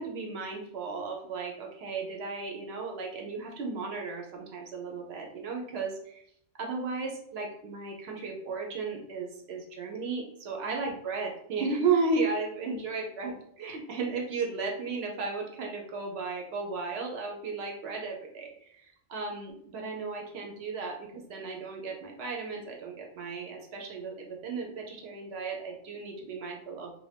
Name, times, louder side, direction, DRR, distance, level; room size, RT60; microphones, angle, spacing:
voice 1, 0.0-6.2 6.6-26.9, right 4 dB, 70° right, 0 dB, 0.8 m, -34 dB
2.5 x 2.2 x 3.3 m, 0.70 s
omnidirectional pair, 1.2 m